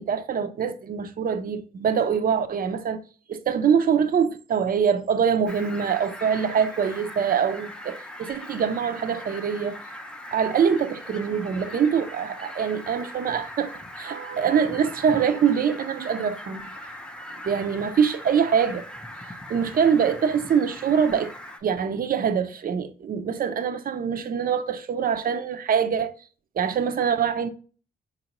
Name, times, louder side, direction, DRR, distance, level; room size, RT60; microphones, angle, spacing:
voice 1, 0.0-3.0 3.3-9.8 10.3-16.6 17.4-18.8 19.5-21.3 21.6-26.1 26.6-27.5, right 7 dB, 50° right, 0.5 m, -24 dB
Fowl, 5.5-21.6, left 1 dB, 5° left, 0.5 m, -40 dB
3.7 x 2.5 x 2.9 m
cardioid pair, 75°, 19 cm